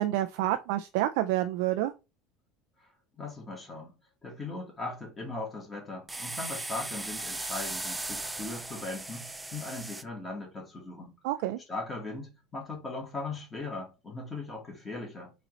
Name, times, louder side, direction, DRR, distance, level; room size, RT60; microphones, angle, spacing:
voice 1, 0.0-1.9 11.2-11.6, right 14 dB, 75° right, 0.4 m, -28 dB
voice 2, 3.2-4.0 4.2-11.1 11.7-15.3, left 3 dB, 15° left, 1.8 m, -39 dB
sound 1, 6.1-10.0, right 2 dB, 10° right, 0.4 m, -37 dB
4.0 x 3.1 x 3.9 m
cardioid pair, 140°, 0 cm